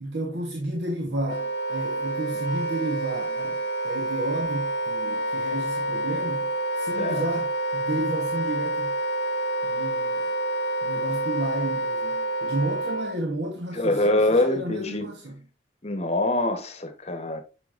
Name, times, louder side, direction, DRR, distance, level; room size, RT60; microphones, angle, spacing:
voice 1, 0.0-3.6 3.8-9.0 9.6-10.2 10.8-15.4, right 1 dB, 65° right, 1.1 m, -32 dB
Wind instrument woodwind instrument, 1.2-13.1, right 1 dB, 60° left, 0.9 m, -28 dB
voice 2, 13.7-15.1 15.8-17.4, left 1 dB, 35° left, 1.0 m, -24 dB
8.3 x 6.0 x 2.5 m
head